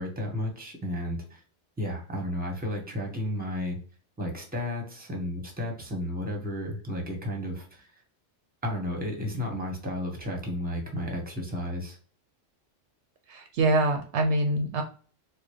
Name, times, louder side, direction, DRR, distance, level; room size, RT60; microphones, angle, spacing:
voice 1, 0.0-1.4 1.8-3.8 4.2-7.9 8.6-12.0, left 1 dB, 10° right, 1 dB, 1.0 m, -33 dB
voice 2, 13.3-14.8, right 2 dB, 70° right, 4 dB, 0.8 m, -25 dB
4.5 x 2.2 x 3.1 m, 0.41 s
omnidirectional pair, 1.2 m